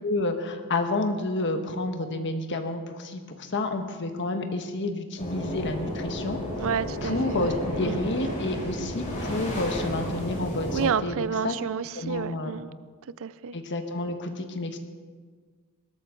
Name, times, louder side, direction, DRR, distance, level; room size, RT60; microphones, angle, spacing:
voice 1, 0.0-6.4 7.0-11.6 11.9-12.6 13.5-14.8, left 2 dB, 55° left, 5 dB, 1.4 m, -30 dB
sound 1, 5.2-10.9, equal, 35° left, 4.6 m, -32 dB
voice 2, 6.6-7.5 7.8-8.0 10.7-12.7 13.2-13.5, right 7 dB, 65° right, 17 dB, 0.5 m, -30 dB
20.5 x 12.5 x 3.9 m, 1.5 s
head